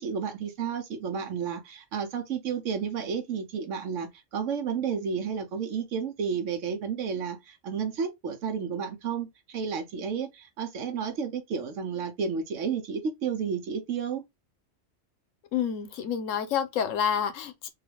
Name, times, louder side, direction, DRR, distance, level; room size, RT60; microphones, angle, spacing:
voice 1, 0.0-14.2, right 6 dB, 85° right, 1.2 m, -32 dB
voice 2, 15.5-17.7, left 8 dB, 90° left, 1.1 m, -28 dB
3.8 x 2.4 x 3.2 m
omnidirectional pair, 1.3 m